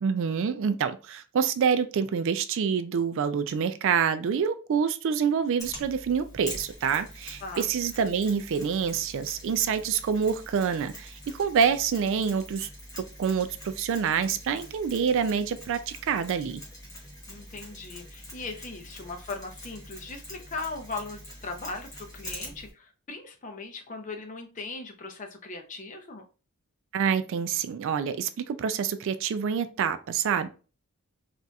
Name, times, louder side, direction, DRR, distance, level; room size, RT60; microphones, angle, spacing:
voice 1, 0.0-12.7 13.0-16.6 26.9-30.5, right 6 dB, 60° right, 11 dB, 0.3 m, -27 dB
Mechanisms, 5.6-22.7, left 1 dB, 15° left, 1.1 m, -44 dB
voice 2, 17.3-26.2, left 3 dB, 35° left, 4 dB, 0.5 m, -39 dB
4.0 x 2.5 x 2.3 m, 0.33 s
head